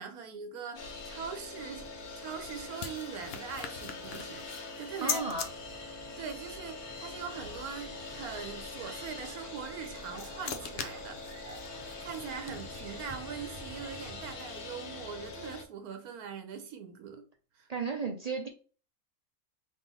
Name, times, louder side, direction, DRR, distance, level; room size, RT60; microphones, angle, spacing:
voice 1, 0.0-5.3 6.2-11.6 12.0-17.3 17.5-17.7, right 7 dB, 85° right, 1.2 m, -42 dB
sound 1, 0.7-15.6, left 3 dB, 90° left, 1.6 m, -44 dB
sound 2, 1.9-5.5 9.6-13.0, left 6 dB, 55° left, 0.8 m, -41 dB
voice 2, 5.0-5.5 17.7-18.5, right 4 dB, 45° right, 0.5 m, -33 dB
sound 3, 5.4-14.3, right 2 dB, 25° right, 0.9 m, -51 dB
3.7 x 3.5 x 4.1 m
omnidirectional pair, 1.5 m